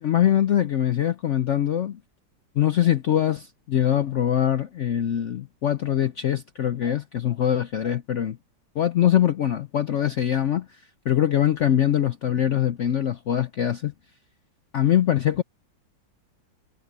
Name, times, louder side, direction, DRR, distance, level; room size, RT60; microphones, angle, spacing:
voice 1, 0.0-2.0 2.6-8.4 8.8-13.9 14.7-15.4, left 10 dB, 80° left, 0.6 m, -23 dB
omnidirectional pair, 2.1 m